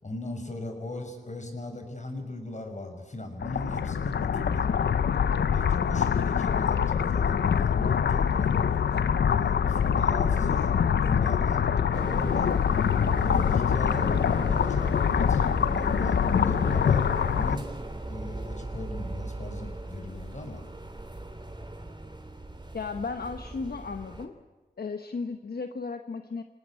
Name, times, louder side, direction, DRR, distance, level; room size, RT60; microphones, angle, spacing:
voice 1, 0.0-4.7 5.5-11.6 11.9-12.5 13.1-17.7 18.0-20.6, left 1 dB, 45° left, 5 dB, 6.1 m, -38 dB
sound 1, 3.4-17.6, left 7 dB, 90° left, 0.7 m, -24 dB
sound 2, 11.9-24.3, right 2 dB, 25° right, 3.3 m, -37 dB
voice 2, 22.7-24.3 24.8-26.4, left 4 dB, 70° left, 7 dB, 1.2 m, -35 dB
27.5 x 18.5 x 8.5 m, 1.3 s
cardioid pair, 55°, 17 cm